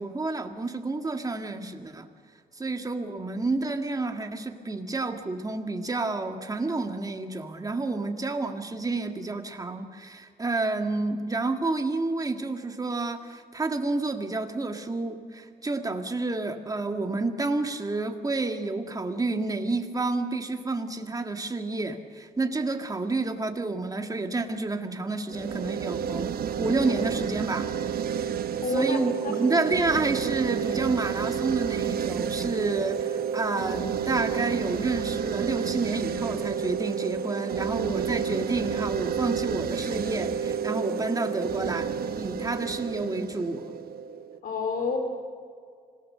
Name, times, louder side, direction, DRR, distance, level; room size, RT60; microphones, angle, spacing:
voice 1, 0.0-2.1 2.5-26.3 26.6-27.7 28.7-43.7, right 3 dB, 20° right, 5 dB, 1.9 m, -29 dB
sound 1, 25.3-44.4, right 7 dB, 70° right, 1.0 m, -30 dB
voice 2, 28.6-29.5 44.4-45.0, left 3 dB, 65° left, 5 dB, 3.8 m, -29 dB
26.0 x 17.5 x 6.8 m, 2.1 s
cardioid pair, 90°, 16 cm